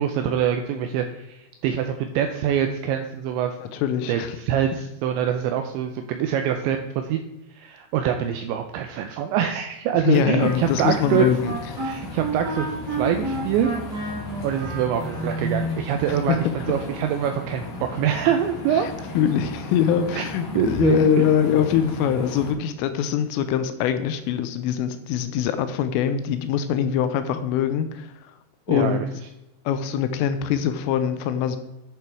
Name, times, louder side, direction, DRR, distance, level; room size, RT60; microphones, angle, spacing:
voice 1, 0.0-3.6 4.1-7.2 7.6-11.3 11.8-12.7 13.0-13.7 14.4-16.4 16.7-18.9 20.1-20.3 20.6-21.3 28.7-29.0, right 9 dB, 80° right, 6 dB, 2.7 m, -24 dB
voice 2, 3.7-4.4 10.0-11.8 16.1-16.4 18.7-18.9 19.2-28.3 28.7-29.0 29.7-31.6, left 9 dB, 85° left, 10 dB, 3.3 m, -23 dB
Wind instrument woodwind instrument, 10.1-15.4, right 2 dB, 55° right, 1.1 m, -31 dB
sound 1, 10.4-22.5, left 1 dB, 60° left, 4.6 m, -34 dB
11.5 x 7.0 x 4.6 m, 0.94 s
omnidirectional pair, 5.7 m